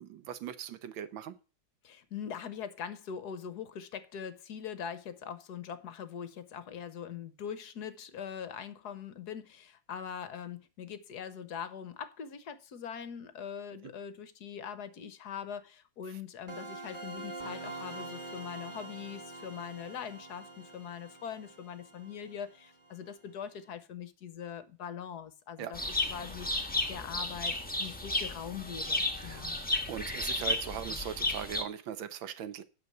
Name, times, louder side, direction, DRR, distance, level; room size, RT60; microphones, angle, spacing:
voice 1, 0.0-1.4 13.8-13.9 16.1-16.2 25.6-25.7 29.2-29.5 29.9-32.6, right 9 dB, 85° right, 1.6 m, -40 dB
voice 2, 1.8-29.6, left 8 dB, 60° left, 1.3 m, -42 dB
sound 1, 16.5-23.1, right 2 dB, 30° right, 1.4 m, -45 dB
sound 2, 25.7-31.6, left 2 dB, 5° left, 1.2 m, -33 dB
9.5 x 6.3 x 6.6 m
omnidirectional pair, 2.1 m